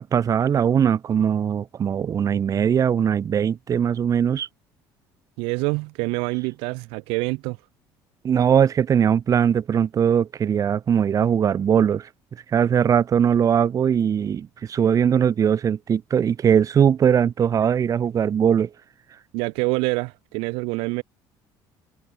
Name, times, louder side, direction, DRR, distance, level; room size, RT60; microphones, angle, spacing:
voice 1, 0.0-4.5 8.2-12.1 12.5-18.7, right 8 dB, 40° right, 1.2 m, -20 dB
voice 2, 5.4-7.6 19.3-21.0, right 28 dB, 85° right, 1.6 m, -26 dB
cardioid pair, 105°, 9 cm